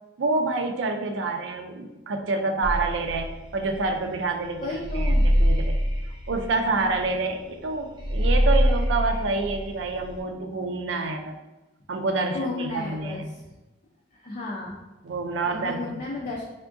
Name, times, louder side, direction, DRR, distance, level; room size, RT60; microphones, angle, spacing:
voice 1, 0.2-5.8 6.3-11.4 11.9-13.3 15.0-16.0, right 3 dB, 80° right, 6 dB, 0.4 m, -28 dB
sound 1, 2.6-10.2, equal, 25° right, 0.6 m, -24 dB
voice 2, 4.6-5.2 12.3-13.2 14.2-14.8 15.4-16.4, left 2 dB, 45° left, -3 dB, 0.5 m, -33 dB
3.6 x 3.5 x 2.5 m, 1.1 s
head